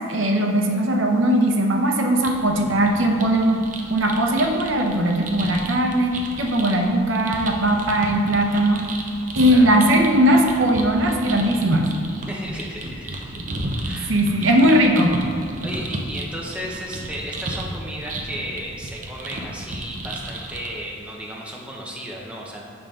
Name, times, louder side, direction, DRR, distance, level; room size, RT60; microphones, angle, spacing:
voice 1, 0.1-3.6 3.9-6.1 6.4-8.8 9.4-11.9 14.1-15.1, right 1 dB, 70° right, 2 dB, 0.8 m, -19 dB
sound 1, 2.2-20.7, right 1 dB, 40° right, 0.6 m, -33 dB
voice 2, 9.5-9.8 12.3-13.4 13.8-14.2 15.6-22.6, equal, 5° right, -3 dB, 0.8 m, -34 dB
7.2 x 5.3 x 3.7 m, 2.3 s
head